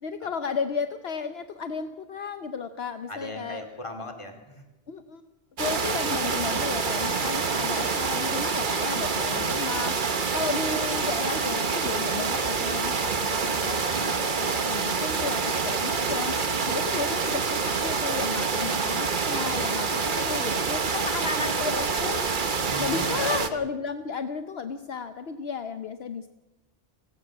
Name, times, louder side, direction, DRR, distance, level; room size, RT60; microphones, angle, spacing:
voice 1, 0.0-3.6 4.9-5.2 5.6-26.3, left 5 dB, 65° left, 9 dB, 1.1 m, -34 dB
voice 2, 3.1-4.7 22.7-23.6, left 1 dB, 25° left, 5 dB, 2.6 m, -38 dB
sound 1, 5.6-23.5, right 5 dB, 50° right, 1.3 m, -27 dB
29.5 x 17.0 x 6.1 m, 1.0 s
omnidirectional pair, 1.1 m